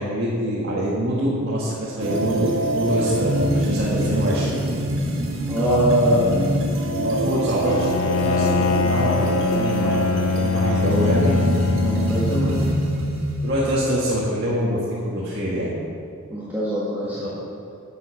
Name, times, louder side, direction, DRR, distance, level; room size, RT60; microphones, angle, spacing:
voice 1, 0.0-4.7 5.6-6.3 7.0-9.9 10.4-11.3 12.2-12.6 13.4-15.7, right 1 dB, 50° right, -8 dB, 2.0 m, -24 dB
sound 1, 2.0-13.5, right 1 dB, 70° right, 1.6 m, -25 dB
voice 2, 5.5-5.8 11.8-12.5 16.3-17.4, left 1 dB, 10° right, -10 dB, 1.7 m, -27 dB
Bowed string instrument, 7.6-13.0, left 4 dB, 90° left, 0.6 m, -23 dB
11.0 x 7.5 x 6.0 m, 2.4 s
head